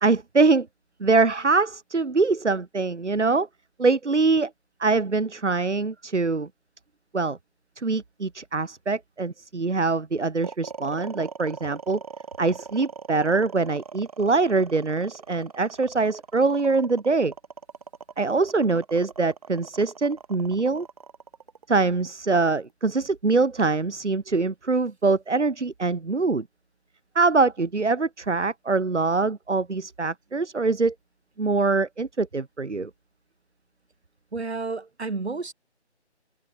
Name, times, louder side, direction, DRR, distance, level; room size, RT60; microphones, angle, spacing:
voice 1, 0.0-0.7 1.0-3.5 3.8-4.5 4.8-6.5 7.1-7.4 7.8-12.0 12.4-17.3 18.2-20.9 21.7-26.4 27.2-30.9 31.4-32.9, right 3 dB, 85° right, 1.7 m, -23 dB
sound 1, 10.4-22.7, right 5 dB, 35° right, 1.2 m, -41 dB
voice 2, 34.3-35.5, right 3 dB, 65° right, 4.9 m, -31 dB
figure-of-eight pair, 160°, 35 cm